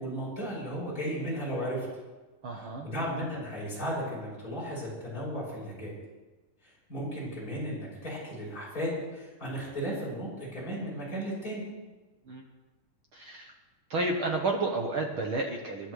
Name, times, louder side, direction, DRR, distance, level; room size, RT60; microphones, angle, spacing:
voice 1, 0.0-1.9 2.5-5.9 6.6-11.6, equal, 25° left, -6 dB, 7.1 m, -35 dB
voice 2, 2.4-2.9 12.3-12.4 13.1-13.5 13.9-15.9, right 2 dB, 65° right, 1 dB, 1.3 m, -31 dB
28.0 x 11.5 x 3.2 m, 1.2 s
omnidirectional pair, 3.8 m